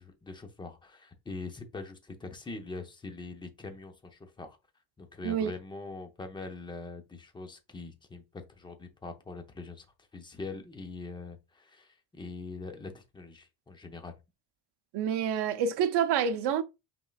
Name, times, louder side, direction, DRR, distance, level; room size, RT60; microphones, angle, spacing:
voice 1, 0.0-4.6 5.0-9.9 10.1-14.2, left 3 dB, 10° left, 0.6 m, -43 dB
voice 2, 14.9-16.6, right 8 dB, 60° right, 0.7 m, -27 dB
5.3 x 3.7 x 2.3 m
cardioid pair, 140°, 46 cm